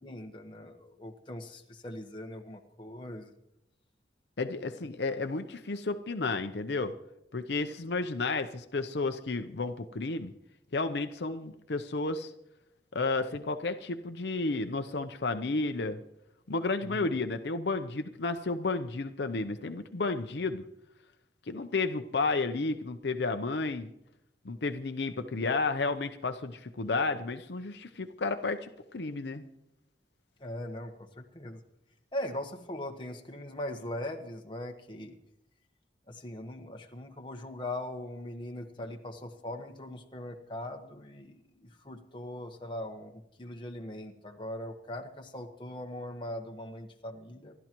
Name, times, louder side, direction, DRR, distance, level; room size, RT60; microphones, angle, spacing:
voice 1, 0.0-3.3 16.8-17.1 30.4-31.6 32.1-35.2 36.1-47.5, left 1 dB, 25° left, 3 dB, 1.2 m, -40 dB
voice 2, 4.4-6.9 7.3-10.3 10.7-12.3 12.9-16.0 16.5-20.6 21.5-23.9 24.4-29.4, left 3 dB, 70° left, 8 dB, 0.7 m, -32 dB
27.0 x 12.0 x 3.0 m, 0.84 s
head